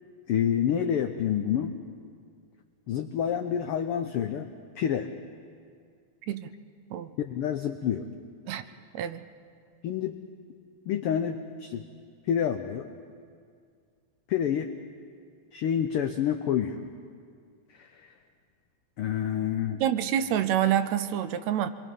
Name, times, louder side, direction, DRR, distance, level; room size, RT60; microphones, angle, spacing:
voice 1, 0.3-1.7 2.9-4.5 4.8-5.1 7.2-8.1 9.8-10.2 10.9-11.8 12.3-12.9 14.3-14.7 15.5-16.8 17.7-18.1 19.0-19.8, left 9 dB, 85° left, 7 dB, 1.2 m, -28 dB
voice 2, 8.9-9.3 19.8-21.7, right 10 dB, 75° right, 11 dB, 1.8 m, -27 dB
26.0 x 22.0 x 5.4 m, 2.2 s
omnidirectional pair, 3.4 m